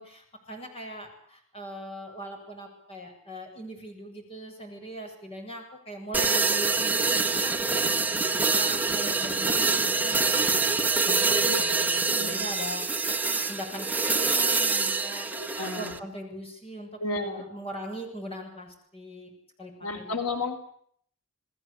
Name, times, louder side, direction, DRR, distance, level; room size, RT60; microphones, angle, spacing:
voice 1, 0.0-15.3 15.8-19.3 19.6-20.2, right 1 dB, 30° left, 3 dB, 7.8 m, -40 dB
sound 1, 6.1-16.0, right 4 dB, 10° right, 1.5 m, -25 dB
voice 2, 11.3-11.6 12.0-12.5 15.4-16.0 17.0-17.4 19.8-20.7, left 2 dB, 85° left, 5 dB, 4.4 m, -33 dB
30.0 x 19.5 x 8.5 m, 0.64 s
head